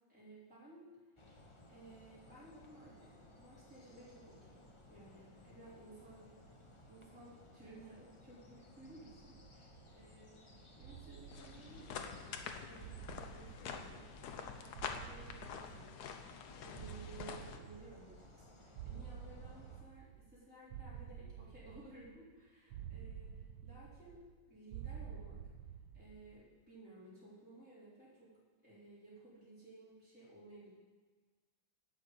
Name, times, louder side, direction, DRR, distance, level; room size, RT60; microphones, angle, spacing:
voice 1, 0.1-0.9 1.2-1.4 1.7-4.6 4.9-6.3 6.9-25.4 25.9-28.3 28.6-30.7, right 2 dB, 5° right, -10 dB, 4.0 m, -57 dB
sound 1, 1.2-19.8, left 1 dB, 30° left, 0.6 m, -60 dB
sound 2, 8.8-10.2 10.8-12.3 12.8-14.4 14.7-16.3 16.7-18.4 18.7-20.4 20.7-22.3 22.7-24.4 24.7-26.3, right 8 dB, 70° right, 1.4 m, -51 dB
sound 3, 11.3-17.6, left 6 dB, 60° left, 1.1 m, -47 dB
11.5 x 6.5 x 8.0 m, 1.4 s
omnidirectional pair, 2.4 m